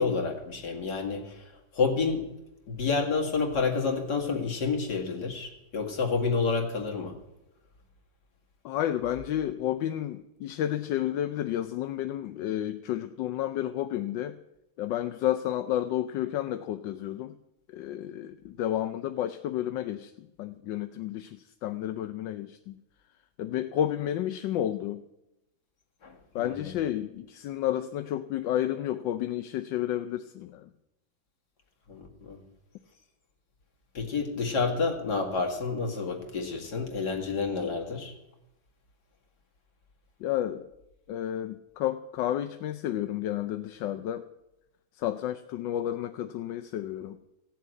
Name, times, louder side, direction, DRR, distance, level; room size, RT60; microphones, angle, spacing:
voice 1, 0.0-1.4 1.7-2.3 2.7-7.1 26.0-26.7 31.9-32.4 33.9-38.1, left 4 dB, 65° left, 1 dB, 2.7 m, -29 dB
voice 2, 8.6-14.4 14.8-17.3 17.7-22.8 23.4-25.0 26.3-30.7 40.2-40.7 41.1-44.3 45.0-47.2, left 12 dB, 85° left, 9 dB, 1.4 m, -31 dB
15.5 x 7.4 x 9.2 m, 0.91 s
omnidirectional pair, 1.9 m